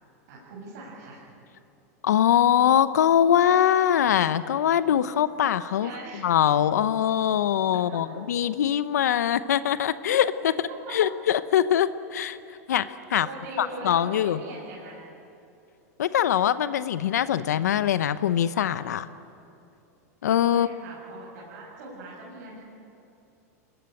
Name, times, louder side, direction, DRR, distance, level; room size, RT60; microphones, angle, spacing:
voice 1, 0.3-1.4 5.8-6.3 7.9-8.2 10.7-11.0 13.2-15.0 20.5-22.6, right 2 dB, 80° right, -5 dB, 7.0 m, -41 dB
voice 2, 2.0-5.9 6.2-10.5 10.9-12.4 12.7-12.8 13.1-13.3 13.6-14.4 16.0-19.1 20.2-20.7, left 10 dB, 85° left, 14 dB, 0.8 m, -22 dB
25.0 x 20.0 x 9.0 m, 2.7 s
hypercardioid pair, 115°, 9 cm